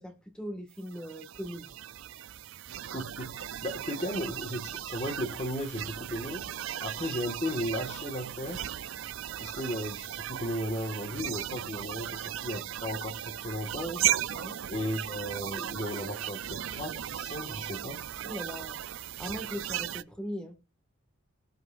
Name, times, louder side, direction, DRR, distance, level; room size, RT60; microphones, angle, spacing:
voice 1, 0.0-1.8 14.3-14.6 18.2-18.8 19.2-20.7, equal, 5° left, 1.8 m, -40 dB
sound 1, 0.9-20.0, right 11 dB, 65° right, 0.4 m, -36 dB
voice 2, 2.9-6.5 6.8-8.6 9.4-14.1 14.7-18.1, equal, 30° left, 1.8 m, -35 dB
21.5 x 7.7 x 2.6 m
head